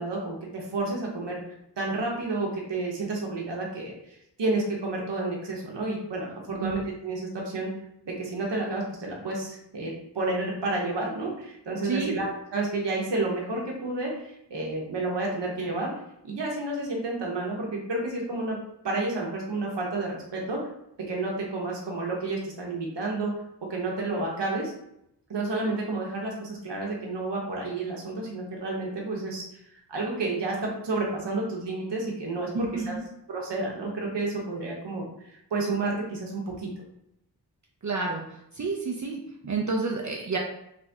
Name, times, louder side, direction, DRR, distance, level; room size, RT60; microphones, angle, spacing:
voice 1, 0.0-1.4 1.8-3.9 4.4-7.7 8.1-15.9 16.2-18.6 18.8-20.6 21.1-23.3 23.7-24.7 25.3-29.4 29.9-32.9 33.3-36.7, right 2 dB, 80° right, -2 dB, 0.9 m, -30 dB
voice 2, 11.8-12.2 32.5-33.0 37.8-38.2 38.5-40.4, right 4 dB, 45° right, 0 dB, 0.5 m, -30 dB
3.3 x 2.6 x 3.4 m, 0.78 s
wide cardioid pair, 65°, 41 cm